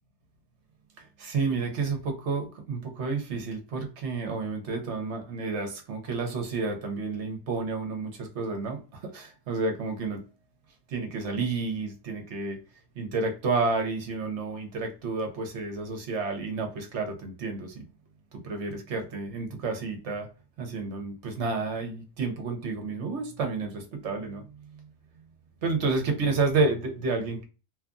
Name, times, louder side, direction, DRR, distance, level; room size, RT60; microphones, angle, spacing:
voice 1, 1.0-10.2 10.9-12.6 13.0-17.8 18.3-20.3 20.6-24.5 25.6-27.4, right 3 dB, 60° right, 1.0 m, -30 dB
2.8 x 2.4 x 2.4 m
omnidirectional pair, 1.4 m